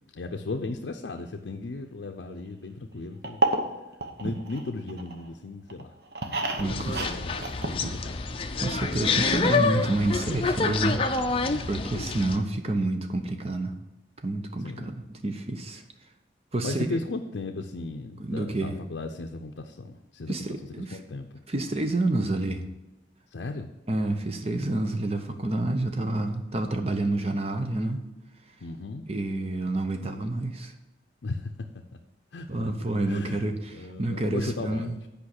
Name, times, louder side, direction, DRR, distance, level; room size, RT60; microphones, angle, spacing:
voice 1, 0.1-3.4 4.2-5.9 6.7-8.2 11.4-11.7 14.6-14.9 16.6-20.4 20.8-21.3 23.3-23.7 28.6-29.1 31.2-31.5 32.3-32.7 33.1-33.4 33.7-35.0, left 3 dB, 75° left, 4 dB, 0.6 m, -36 dB
sound 1, 3.2-5.3 5.7-8.4 8.6-8.7 8.9-9.0, right 3 dB, 60° right, 1.0 m, -30 dB
sound 2, 6.6-12.4, left 4 dB, 30° left, 0.5 m, -27 dB
voice 2, 6.6-7.1 8.6-11.0 11.7-13.8 14.2-15.8 16.5-16.9 18.2-18.8 20.3-21.0 21.5-22.6 23.9-28.0 29.1-30.7 32.5-33.7 34.0-35.0, right 2 dB, 35° right, 6 dB, 0.7 m, -28 dB
8.6 x 5.1 x 6.5 m, 1.0 s
head